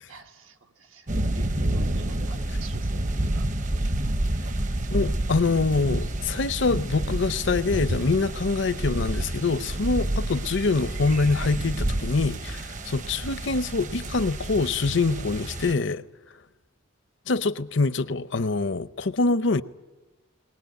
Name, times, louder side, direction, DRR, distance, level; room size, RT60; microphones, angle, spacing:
voice 1, 0.1-3.5 4.4-4.5, right 4 dB, 80° right, 1.6 m, -48 dB
sound 1, 1.1-15.7, right 1 dB, 40° right, 0.8 m, -29 dB
voice 2, 4.9-16.1 17.3-19.6, left 3 dB, 60° left, 0.7 m, -25 dB
21.5 x 19.0 x 9.2 m
head